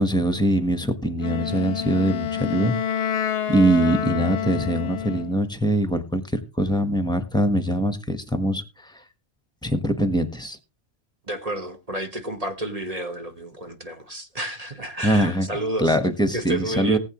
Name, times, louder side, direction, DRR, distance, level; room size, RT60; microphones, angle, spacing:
voice 1, 0.0-2.7 3.1-3.2 3.5-9.0 9.6-10.6 15.0-15.5 15.8-17.0, right 1 dB, 5° left, 1.2 m, -23 dB
Wind instrument woodwind instrument, 1.2-5.4, left 9 dB, 60° left, 0.9 m, -28 dB
voice 2, 11.3-16.0 16.3-17.0, right 1 dB, 30° right, 1.3 m, -30 dB
19.0 x 8.4 x 3.1 m
omnidirectional pair, 1.3 m